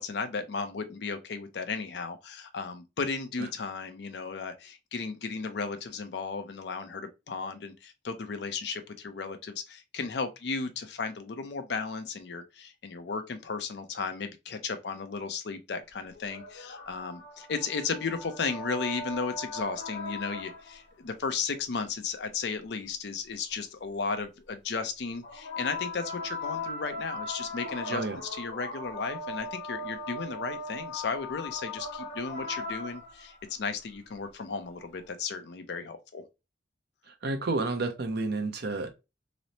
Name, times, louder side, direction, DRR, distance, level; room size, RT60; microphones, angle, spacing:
voice 1, 0.0-28.0 28.3-36.2, left 4 dB, 65° left, 0.5 m, -35 dB
sound 1, 16.1-20.9 25.2-33.5 34.8-34.9, left 2 dB, 90° left, 0.8 m, -39 dB
voice 2, 37.1-38.9, right 3 dB, 60° right, 0.6 m, -30 dB
3.0 x 2.0 x 2.6 m
head